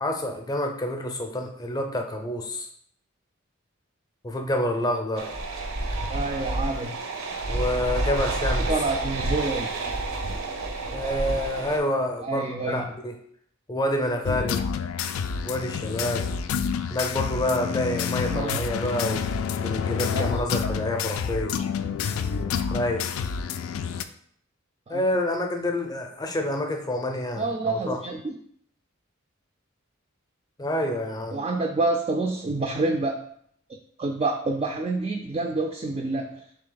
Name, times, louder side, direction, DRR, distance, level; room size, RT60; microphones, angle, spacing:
voice 1, 0.0-2.7 4.2-5.4 7.5-8.7 10.9-13.2 13.7-14.7 15.4-16.3 16.9-19.3 19.6-21.6 22.7-23.1 24.9-28.0 30.6-31.4, left 1 dB, 20° left, 4 dB, 0.5 m, -28 dB
sound 1, 5.2-11.8, right 2 dB, 85° right, 0.6 m, -29 dB
voice 2, 6.1-7.0 8.7-9.7 12.2-12.9 18.3-18.6 20.1-20.3 24.9-25.0 27.4-28.4 31.3-33.2 34.0-36.4, right 3 dB, 30° right, 2 dB, 0.3 m, -27 dB
sound 2, 14.2-24.0, left 6 dB, 80° left, 0.3 m, -28 dB
3.5 x 3.3 x 3.8 m, 0.66 s
head